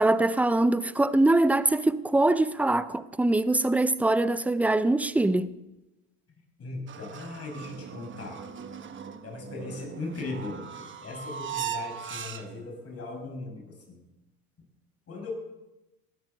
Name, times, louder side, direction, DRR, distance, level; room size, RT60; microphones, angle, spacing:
voice 1, 0.0-5.5, right 2 dB, 5° right, 0.5 m, -23 dB
voice 2, 6.6-8.4 9.2-14.0 15.1-15.3, left 3 dB, 35° left, 5.6 m, -38 dB
sound 1, 6.9-12.8, right 8 dB, 25° right, 1.0 m, -39 dB
19.5 x 13.0 x 4.0 m
hypercardioid pair, 95°, 44 cm